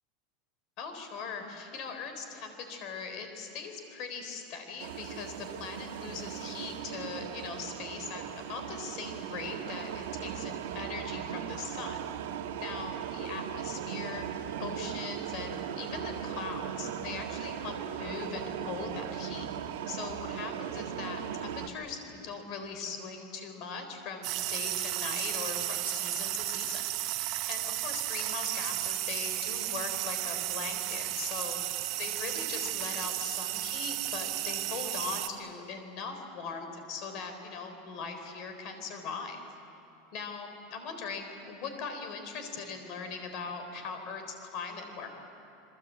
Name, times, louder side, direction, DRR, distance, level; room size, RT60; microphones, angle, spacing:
voice 1, 0.8-12.0 12.6-19.5 19.9-26.8 27.2-39.4 40.1-45.1, left 5 dB, 40° left, 6 dB, 4.0 m, -40 dB
sound 1, 4.8-21.7, right 9 dB, 85° right, 1.7 m, -38 dB
sound 2, 24.2-35.3, right 15 dB, 40° right, 1.1 m, -33 dB
28.5 x 21.5 x 8.5 m, 2.8 s
supercardioid pair, 170°, 0 cm